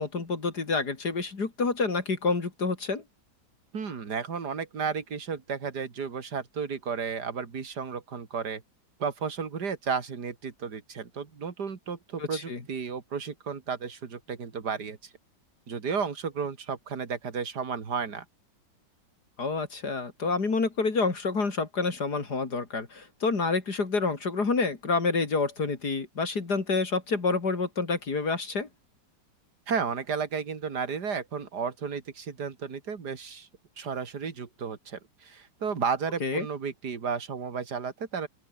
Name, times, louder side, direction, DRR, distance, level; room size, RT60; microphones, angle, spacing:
voice 1, 0.0-3.0 12.2-12.6 19.4-28.7 36.2-36.5, left 4 dB, 65° left, 3.6 m, -28 dB
voice 2, 3.7-8.6 9.0-15.0 15.7-18.2 29.7-33.5 33.8-38.3, right 6 dB, 65° right, 2.9 m, -33 dB
open air
omnidirectional pair, 1.9 m